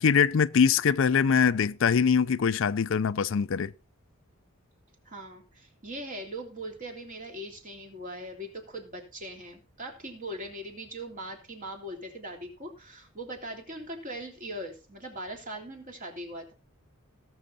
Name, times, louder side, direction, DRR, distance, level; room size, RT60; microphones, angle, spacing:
voice 1, 0.0-3.7, left 6 dB, 65° left, 0.5 m, -23 dB
voice 2, 5.0-16.5, right 1 dB, 40° right, 3.3 m, -40 dB
18.5 x 6.4 x 4.1 m
head